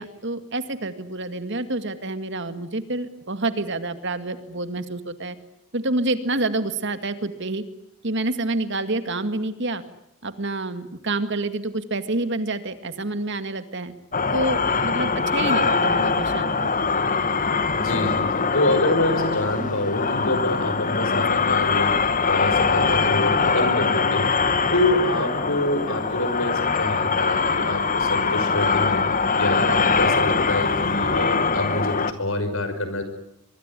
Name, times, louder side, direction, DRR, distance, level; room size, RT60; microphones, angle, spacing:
voice 1, 0.0-5.4 5.7-7.6 8.0-9.8 10.2-13.9 14.3-16.7, right 2 dB, 55° right, 10 dB, 2.2 m, -28 dB
sound 1, 14.1-32.1, left 4 dB, 40° left, 1.5 m, -22 dB
voice 2, 17.7-22.0 22.2-24.3 24.7-33.0, left 2 dB, 75° left, 9 dB, 5.9 m, -26 dB
24.0 x 24.0 x 9.9 m, 0.79 s
head